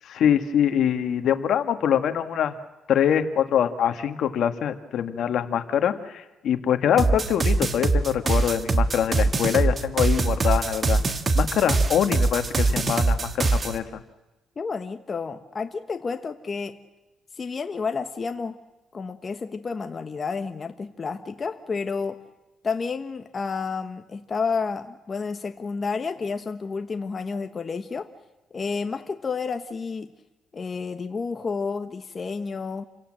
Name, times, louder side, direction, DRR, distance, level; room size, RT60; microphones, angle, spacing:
voice 1, 0.1-2.5 2.9-11.0 11.3-14.0, left 9 dB, 70° left, 8 dB, 1.8 m, -24 dB
sound 1, 7.0-13.8, right 3 dB, 35° right, 1.6 m, -22 dB
voice 2, 14.6-16.8 17.4-18.6 18.9-22.2 22.6-28.1 28.5-30.1 30.5-32.8, left 5 dB, 35° left, 7 dB, 1.1 m, -30 dB
28.5 x 17.5 x 7.6 m, 1.1 s
cardioid pair, 105°, 0 cm